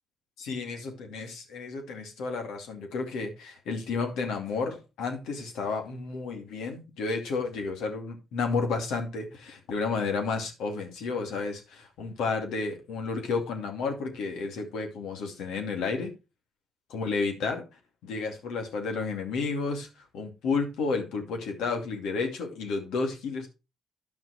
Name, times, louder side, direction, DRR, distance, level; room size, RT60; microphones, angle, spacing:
voice 1, 0.4-16.1 16.9-17.6 18.0-19.9 20.1-23.5, left 4 dB, 80° left, 4 dB, 2.5 m, -31 dB
11.0 x 6.0 x 4.8 m, 0.28 s
supercardioid pair, 65°, 0 cm